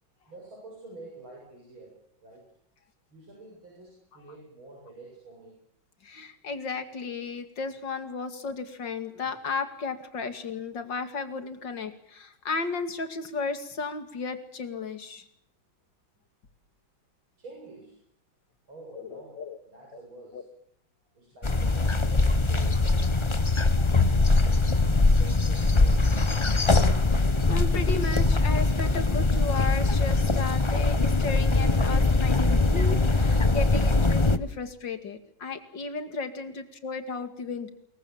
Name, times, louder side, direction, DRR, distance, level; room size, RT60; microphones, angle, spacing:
voice 1, 0.3-2.4 3.1-5.6 17.4-18.0 18.7-20.4 21.1-26.1, right 2 dB, 85° right, -2 dB, 8.3 m, -48 dB
voice 2, 6.0-15.2 18.9-19.6 20.3-20.4 27.2-37.7, left 4 dB, 65° left, 9 dB, 3.0 m, -34 dB
sound 1, 21.4-34.4, left 3 dB, 25° left, 0.6 m, -22 dB
27.0 x 23.0 x 7.4 m, 0.69 s
omnidirectional pair, 2.2 m